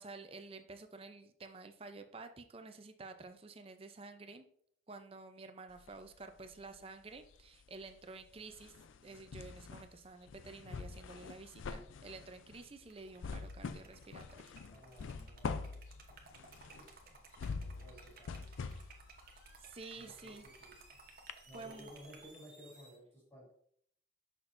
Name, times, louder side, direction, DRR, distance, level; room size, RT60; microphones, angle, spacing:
voice 1, 0.0-4.5 4.9-8.7 9.0-14.5 19.6-20.5 21.5-21.9, right 3 dB, 30° right, 8 dB, 0.5 m, -51 dB
sound 1, 5.7-6.8 7.1-20.9 21.3-21.4, left 4 dB, 90° left, 0.4 m, -45 dB
Liquid, 12.8-22.4, right 4 dB, 50° right, 0.9 m, -59 dB
voice 2, 14.7-16.0 16.4-18.6 20.0-21.0 21.5-23.5, equal, 15° left, -4 dB, 2.5 m, -57 dB
sound 2, 18.1-23.0, right 2 dB, 5° right, 1.2 m, -63 dB
6.5 x 6.0 x 2.6 m, 0.64 s
head